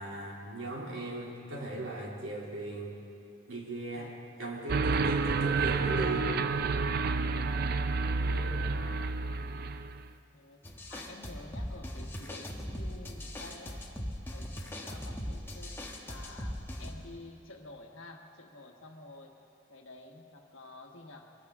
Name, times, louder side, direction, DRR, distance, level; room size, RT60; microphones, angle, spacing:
voice 1, 0.0-2.9 3.5-4.1 4.4-6.3 8.2-8.7, right 2 dB, 75° right, -3 dB, 2.8 m, -38 dB
sound 1, 4.7-10.1, right 4 dB, 50° right, 0.4 m, -29 dB
voice 2, 8.3-9.1 10.3-10.6 10.9-13.9 14.3-15.8 16.0-19.3 19.7-21.3, left 2 dB, 75° left, 2 dB, 1.4 m, -50 dB
sound 2, 10.6-16.9, equal, 10° left, 1.1 m, -39 dB
21.5 x 14.5 x 3.6 m, 2.7 s
head